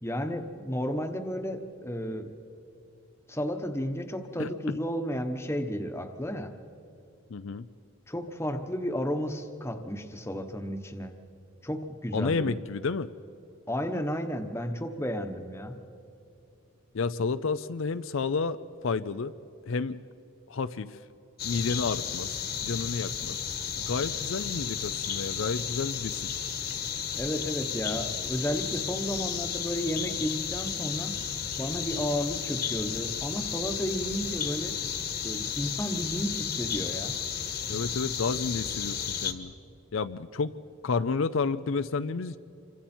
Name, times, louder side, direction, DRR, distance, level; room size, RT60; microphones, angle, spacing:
voice 1, 0.0-2.3 3.3-6.5 8.1-11.1 11.6-12.5 13.7-15.8 27.1-31.1 31.6-34.8 35.2-37.2, equal, 10° left, 7 dB, 1.1 m, -32 dB
voice 2, 4.4-4.8 7.3-7.7 12.1-13.1 16.9-19.3 19.7-20.0 20.5-21.0 21.4-23.4 23.8-26.2 37.7-39.5 39.9-40.5 40.8-42.4, left 4 dB, 65° left, 12 dB, 0.5 m, -31 dB
sound 1, 21.4-39.3, left 7 dB, 45° left, 1.4 m, -33 dB
27.5 x 24.5 x 4.4 m, 2.8 s
head